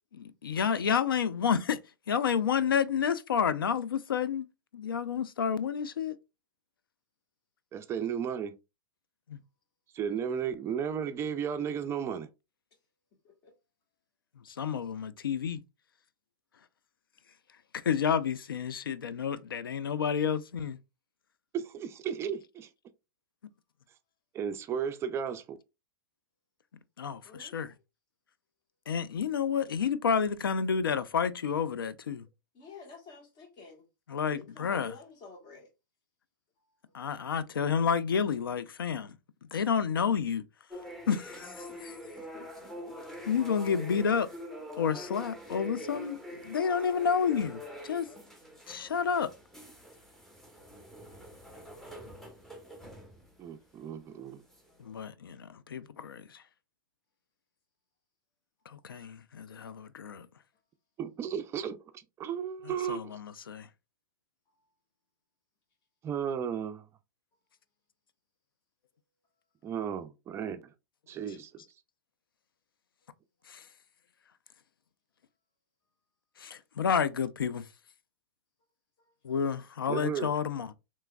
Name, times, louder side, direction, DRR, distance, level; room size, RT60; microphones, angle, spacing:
voice 1, 0.1-1.8 2.1-4.5 4.7-6.2 9.3-9.4 14.4-15.6 17.8-20.8 27.0-27.7 28.9-32.3 34.1-34.9 36.9-39.2 39.5-40.4 41.1-41.6 43.3-44.3 44.8-48.1 48.7-49.3 54.8-56.4 58.7-60.2 62.7-63.7 73.5-73.7 76.5-77.7 79.2-80.7, left 7 dB, 90° left, 0.4 m, -30 dB
voice 2, 7.7-8.6 9.9-12.3 21.5-22.7 24.3-25.6 53.4-54.4 61.0-63.2 66.0-66.9 69.6-70.6 71.1-71.5 79.9-80.3, right 8 dB, 25° right, 0.4 m, -34 dB
voice 3, 27.2-27.8 32.5-33.9 34.3-35.7 36.9-37.0 42.3-43.0 64.6-64.7, left 4 dB, 40° left, 1.3 m, -51 dB
sound 1, 40.7-53.5 54.5-54.9, equal, 5° left, 0.9 m, -45 dB
3.3 x 3.1 x 2.2 m
hypercardioid pair, 115°, 11 cm